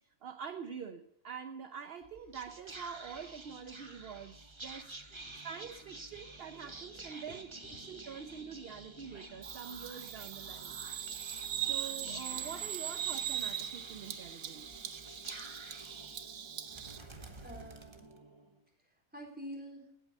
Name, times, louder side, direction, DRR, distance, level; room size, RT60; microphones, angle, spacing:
voice 1, 0.0-4.9 5.4-10.8 11.5-14.9, right 7 dB, 55° right, 9 dB, 0.9 m, -46 dB
Whispering, 2.0-18.6, right 2 dB, 25° right, 1.1 m, -50 dB
voice 2, 6.3-6.7 7.3-7.4 12.0-12.3 17.4-18.1 18.8-19.9, equal, 5° right, 0 dB, 3.8 m, -48 dB
Bird vocalization bird call bird song, 9.4-17.0, right 9 dB, 80° right, 1.3 m, -40 dB
16.5 x 8.8 x 5.5 m, 0.78 s
omnidirectional pair, 1.4 m